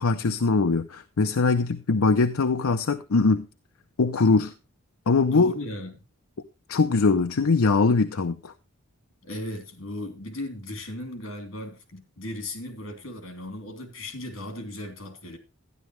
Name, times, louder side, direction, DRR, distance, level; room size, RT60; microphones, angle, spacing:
voice 1, 0.0-3.4 4.0-4.5 5.1-5.5 6.7-8.5, left 4 dB, 90° left, 0.6 m, -22 dB
voice 2, 5.3-6.0 9.2-15.4, left 1 dB, 70° left, 2.9 m, -36 dB
12.5 x 10.5 x 3.1 m
head